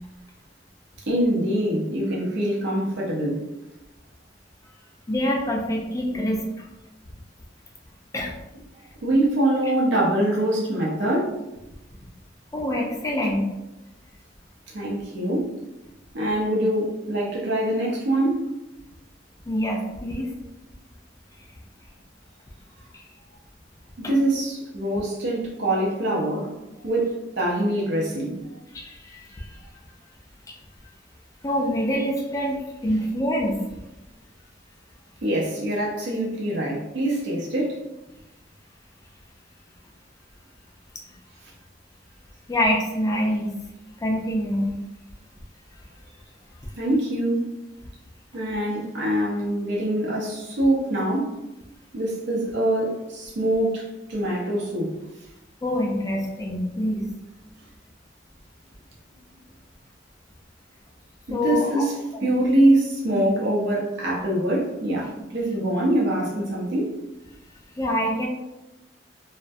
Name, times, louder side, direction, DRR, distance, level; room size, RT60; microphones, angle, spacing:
voice 1, 1.1-3.4 9.0-11.3 14.7-15.5 16.1-18.4 24.0-26.5 26.8-28.4 35.2-37.8 46.8-47.4 48.3-51.3 51.9-54.9 61.3-62.0 62.2-66.9, right 1 dB, 65° right, -4 dB, 0.6 m, -24 dB
voice 2, 5.1-6.6 8.1-8.4 12.5-13.4 19.5-20.3 22.9-23.0 24.0-24.1 28.7-29.5 31.4-33.6 42.5-43.5 44.0-44.7 55.6-57.0 61.3-61.9 62.2-62.3 67.8-68.3, left 1 dB, 20° left, -1 dB, 0.3 m, -25 dB
2.3 x 2.1 x 2.5 m, 0.98 s
head